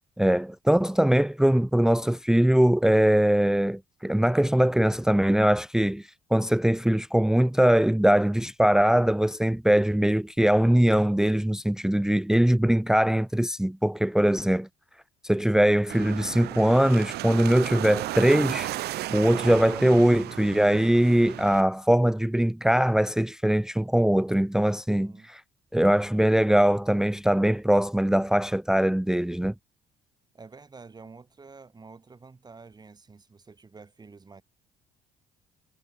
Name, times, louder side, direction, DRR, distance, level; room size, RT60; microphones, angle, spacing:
voice 1, 0.2-14.7 15.2-18.7 19.1-25.1 25.7-29.5, right 1 dB, 5° right, 0.8 m, -22 dB
voice 2, 15.3-15.7 24.9-25.3 30.3-34.4, right 4 dB, 25° right, 5.4 m, -49 dB
sound 1, 15.9-21.6, right 16 dB, 75° right, 1.4 m, -34 dB
cardioid pair, 110°, 17 cm